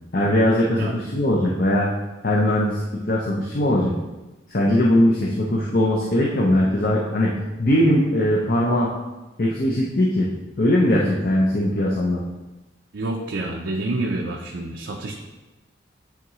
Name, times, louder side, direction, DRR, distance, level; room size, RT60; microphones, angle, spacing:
voice 1, 0.1-1.9 2.2-3.9 4.5-7.3 7.6-8.9 9.4-10.3 10.6-12.2, left 1 dB, 50° left, -3 dB, 0.7 m, -20 dB
voice 2, 12.9-15.1, right 2 dB, 80° right, 0 dB, 0.6 m, -28 dB
8.8 x 3.6 x 3.1 m, 1.1 s
head